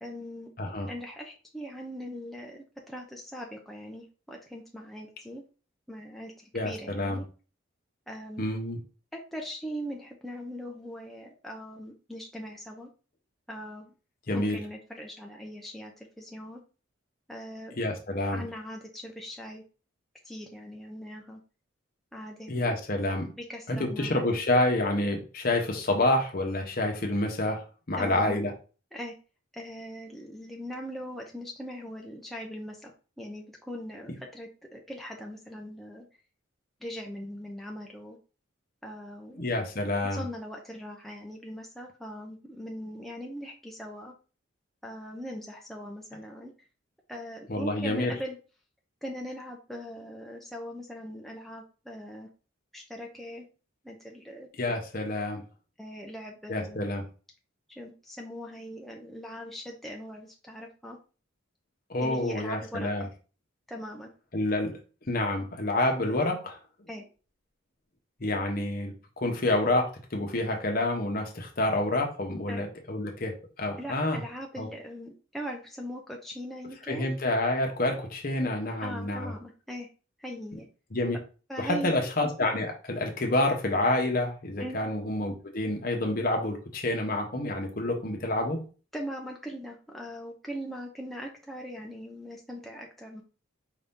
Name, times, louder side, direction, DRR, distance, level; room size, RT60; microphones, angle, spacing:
voice 1, 0.0-0.5 0.9-5.4 5.9-7.2 8.1-8.6 9.3-12.9 13.5-13.9 14.3-16.6 17.3-17.8 18.3-19.6 20.2-21.4 22.1-22.8 23.4-24.3 28.0-28.4 28.9-29.1 29.5-32.9 33.2-36.1 36.8-38.2 38.8-39.4 40.1-44.1 44.8-46.5 47.1-48.4 49.0-52.3 52.7-53.4 53.8-54.5 55.8-56.9 57.7-61.0 62.0-62.9 63.7-64.1 66.9-67.0 72.5-72.7 73.8-77.1 78.8-79.9 80.2-80.7 81.5-81.9 84.6-84.8 88.9-93.2, equal, ahead, 0 dB, 0.5 m, -40 dB
voice 2, 0.6-0.9 6.5-7.2 8.4-8.8 14.3-14.6 17.8-18.4 22.5-23.3 23.7-28.5 39.4-40.2 47.5-48.1 54.6-55.4 56.5-57.0 61.9-63.1 64.3-64.7 65.1-66.6 68.2-74.2 74.6-74.7 76.9-79.3 80.9-81.2 81.6-88.6, left 1 dB, 45° left, 3 dB, 0.9 m, -28 dB
4.9 x 2.7 x 3.5 m, 0.35 s
head